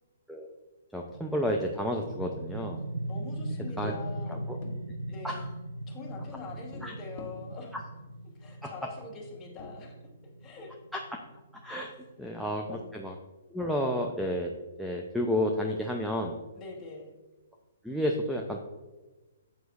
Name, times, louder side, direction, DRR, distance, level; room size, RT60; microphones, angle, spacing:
voice 1, 0.9-2.8 3.8-3.9 4.5-4.6 5.2-5.5 6.8-6.9 8.6-8.7 10.9-11.0 11.6-11.9 12.2-13.1 13.5-14.5 14.8-16.4 17.8-18.6, equal, ahead, 1 dB, 0.7 m, -31 dB
sound 1, 1.1-12.6, right 1 dB, 85° right, 0.6 m, -40 dB
voice 2, 3.1-4.4 5.1-5.5 5.9-7.8 8.4-10.1 10.4-10.7 12.1-12.3 12.7-12.8 16.5-17.1, left 4 dB, 20° left, -3 dB, 2.9 m, -44 dB
sound 2, 4.2-5.5 6.0-8.2 9.6-10.0, left 1 dB, 45° left, 1.4 m, -48 dB
9.3 x 8.3 x 2.6 m, 1.2 s
hypercardioid pair, 135°, 0 cm